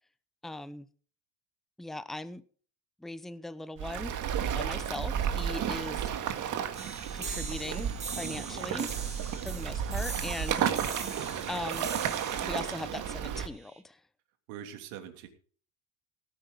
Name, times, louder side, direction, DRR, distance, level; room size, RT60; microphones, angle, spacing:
voice 1, 0.4-0.9 1.8-2.4 3.0-4.2 4.6-6.0 7.1-8.9 9.4-11.0 11.5-11.9 12.4-14.0, left 2 dB, ahead, 14 dB, 0.6 m, -39 dB
Waves surf, 3.8-13.5, right 9 dB, 45° right, 2.0 m, -33 dB
voice 2, 5.6-6.2 9.2-9.5 10.4-10.7 14.5-15.3, right 10 dB, 80° right, 5 dB, 3.1 m, -45 dB
sound 1, 6.7-13.8, right 4 dB, 15° right, 2.3 m, -42 dB
18.0 x 10.5 x 3.9 m, 0.44 s
cardioid pair, 130°, 41 cm